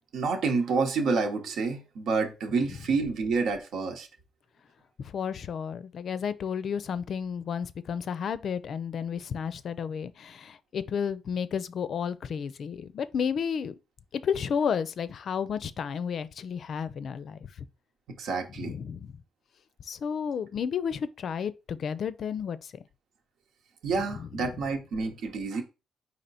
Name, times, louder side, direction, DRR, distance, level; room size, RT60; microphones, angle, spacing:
voice 1, 0.1-4.1 18.2-18.7 23.8-25.6, right 4 dB, 70° right, 1.1 m, -28 dB
voice 2, 5.0-13.7 14.1-17.4 18.6-19.1 19.9-22.7 24.2-24.3, left 7 dB, 60° left, 0.4 m, -32 dB
4.3 x 3.0 x 4.1 m
supercardioid pair, 60°, 0 cm